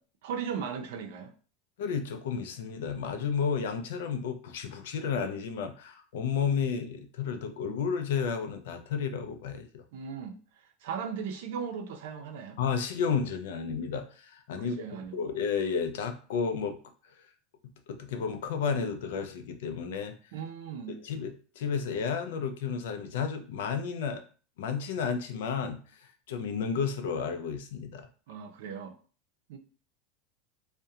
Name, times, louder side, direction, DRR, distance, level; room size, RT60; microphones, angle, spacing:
voice 1, 0.2-1.3 9.9-10.4 10.8-12.6 14.6-15.3 20.3-21.0 28.3-28.9 29.5-29.6, right 7 dB, 75° right, 5 dB, 0.5 m, -37 dB
voice 2, 1.8-9.8 12.6-14.8 15.1-16.8 17.9-20.1 21.0-24.2 24.6-25.8 26.3-28.1, left 6 dB, 85° left, 6 dB, 0.4 m, -32 dB
2.3 x 2.1 x 2.7 m, 0.39 s
supercardioid pair, 140°, 0 cm